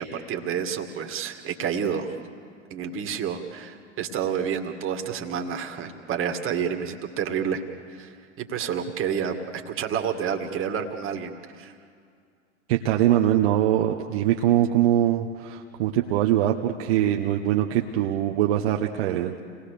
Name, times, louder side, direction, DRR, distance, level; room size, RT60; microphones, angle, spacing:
voice 1, 0.0-2.2 2.7-7.6 7.9-11.7, right 7 dB, 35° right, 5 dB, 2.2 m, -29 dB
voice 2, 12.7-19.4, right 12 dB, 60° right, 2 dB, 1.2 m, -22 dB
29.5 x 19.0 x 6.8 m, 2.2 s
figure-of-eight pair, 85°, 36 cm